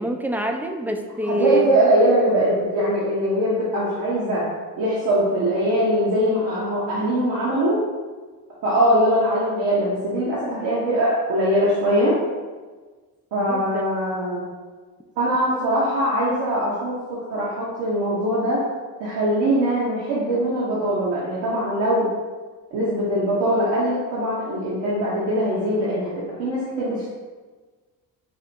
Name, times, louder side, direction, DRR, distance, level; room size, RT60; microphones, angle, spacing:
voice 1, 0.0-1.7 13.4-13.9, right 1 dB, 5° right, 3 dB, 0.3 m, -25 dB
voice 2, 1.3-4.5 4.8-7.8 8.6-12.1 13.3-14.4 15.2-17.0 17.3-18.6 19.0-22.1 22.7-27.1, right 1 dB, 75° right, -8 dB, 1.2 m, -22 dB
4.8 x 3.3 x 2.8 m, 1.4 s
supercardioid pair, 70°, 42 cm